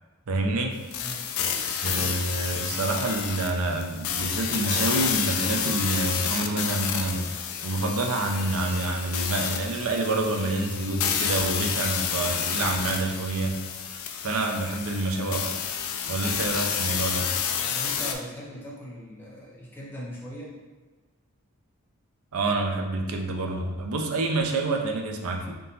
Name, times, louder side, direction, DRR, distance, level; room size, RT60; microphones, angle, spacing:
voice 1, 0.3-0.8 1.8-7.3 7.6-13.6 14.2-15.6 16.1-17.3 22.3-25.5, right 2 dB, 75° right, 3 dB, 0.6 m, -27 dB
sound 1, 0.9-18.1, left 7 dB, 70° left, 0.4 m, -30 dB
voice 2, 17.6-20.6, equal, 10° left, -5 dB, 0.8 m, -40 dB
3.7 x 2.8 x 3.9 m, 1.3 s
head